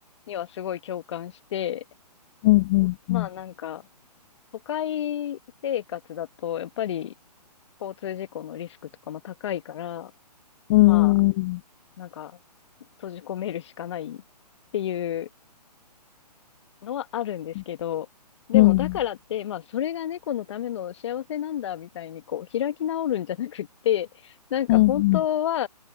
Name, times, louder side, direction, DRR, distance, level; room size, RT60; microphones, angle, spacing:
voice 1, 0.3-1.8 3.1-3.8 4.6-7.1 7.8-8.8 9.1-10.1 10.8-11.1 12.0-12.4 13.0-14.2 14.7-15.3 16.8-18.1 18.5-25.7, left 10 dB, 45° left, 1.6 m, -30 dB
voice 2, 2.4-3.3 10.7-11.6 18.5-18.8 24.7-25.2, left 20 dB, 20° left, 0.6 m, -18 dB
open air
figure-of-eight pair, 140°, 21 cm